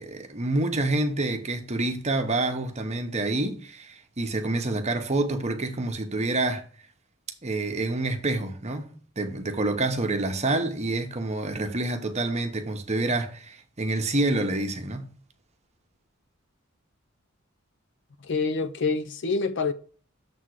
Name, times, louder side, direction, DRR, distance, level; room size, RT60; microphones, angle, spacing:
voice 1, 0.0-6.6 7.4-15.1, right 2 dB, 35° right, 0.9 m, -27 dB
voice 2, 18.2-19.7, left 4 dB, 60° left, 0.6 m, -26 dB
7.0 x 3.6 x 6.4 m
head